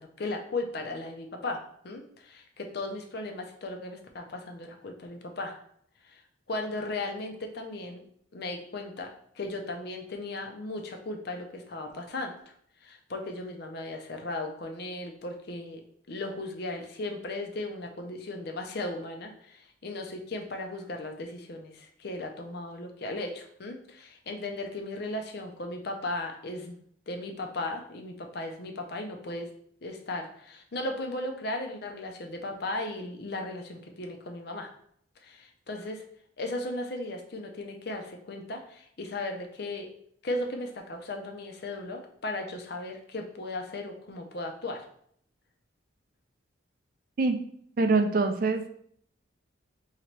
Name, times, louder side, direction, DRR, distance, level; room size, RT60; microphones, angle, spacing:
voice 1, 0.0-5.6 6.0-6.2 6.5-8.0 8.3-12.5 12.8-15.8 16.1-26.8 27.1-29.5 29.8-34.7 35.2-36.0 36.4-39.9 40.2-44.9, left 2 dB, 55° left, 3 dB, 0.5 m, -36 dB
voice 2, 47.8-48.7, right 3 dB, 45° right, 6 dB, 0.3 m, -24 dB
2.9 x 2.8 x 4.5 m, 0.65 s
head